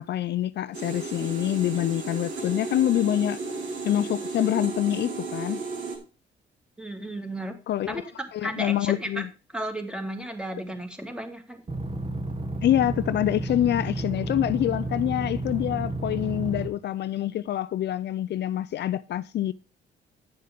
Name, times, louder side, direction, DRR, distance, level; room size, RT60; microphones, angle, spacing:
voice 1, 0.0-3.4 3.8-5.6 7.7-8.0 8.3-9.3 12.6-19.5, left 12 dB, 60° left, 0.4 m, -26 dB
sound 1, 0.7-6.0, right 3 dB, 75° right, 3.5 m, -34 dB
voice 2, 6.8-7.5 7.9-9.2 9.5-11.6, right 1 dB, 5° right, 2.3 m, -34 dB
sound 2, 11.7-16.7, right 2 dB, 30° right, 1.7 m, -31 dB
10.0 x 6.7 x 5.0 m
cardioid pair, 90°, 20 cm